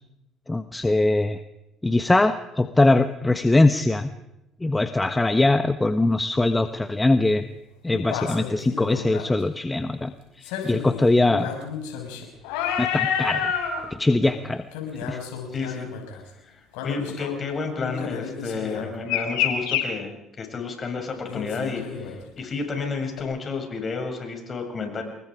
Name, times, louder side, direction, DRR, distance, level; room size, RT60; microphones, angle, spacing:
voice 1, 0.5-1.4 1.8-4.1 4.6-7.4 7.8-10.1 10.6-11.5 12.8-13.4 13.9-14.6 15.0-15.2, left 2 dB, 15° left, 9 dB, 1.3 m, -21 dB
sound 1, 6.4-6.5 7.9-9.3 10.4-13.8 14.2-14.4 14.7-16.2 16.7-17.4 17.8-19.8 21.3-22.4 23.2-23.3, left 8 dB, 90° left, 5.6 m, -29 dB
voice 2, 15.5-15.9 16.4-16.6 16.8-25.0, left 4 dB, 40° left, 4 dB, 7.2 m, -31 dB
27.5 x 21.5 x 5.0 m, 0.89 s
supercardioid pair, 80°, 0 cm